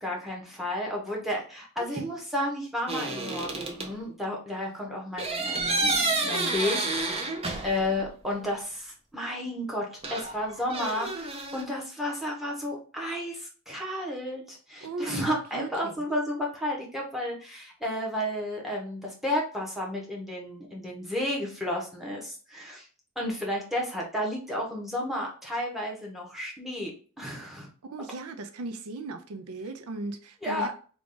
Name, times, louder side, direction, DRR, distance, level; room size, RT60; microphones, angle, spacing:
voice 1, 0.0-7.3 7.6-22.9 23.2-26.9 27.2-27.7 30.4-30.7, left 1 dB, ahead, 1.0 m, -32 dB
voice 2, 1.8-2.1 14.8-15.9 27.8-30.7, right 2 dB, 80° right, 0.5 m, -37 dB
sound 1, 2.9-3.9 5.2-8.0 8.3-8.4 10.0-11.6, right 2 dB, 25° right, 0.7 m, -30 dB
3.5 x 2.4 x 3.8 m
head